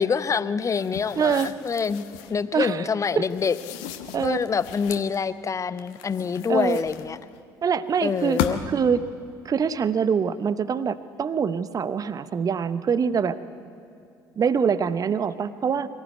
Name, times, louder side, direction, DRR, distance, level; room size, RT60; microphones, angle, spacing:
voice 1, 0.0-2.0 2.3-3.5 4.2-7.2 8.0-8.6, left 6 dB, 30° left, 15 dB, 0.8 m, -26 dB
sound 1, 0.7-2.4 3.3-5.1 5.8-7.4 8.1-8.9, left 9 dB, 65° left, 1.2 m, -35 dB
voice 2, 1.2-1.5 2.5-2.9 3.2-3.3 4.1-4.4 6.5-6.8 7.6-8.4 8.7-9.0 9.4-13.4 14.4-15.9, right 6 dB, 35° right, 15 dB, 0.9 m, -24 dB
23.0 x 15.0 x 9.5 m, 2.5 s
figure-of-eight pair, 55°, 11 cm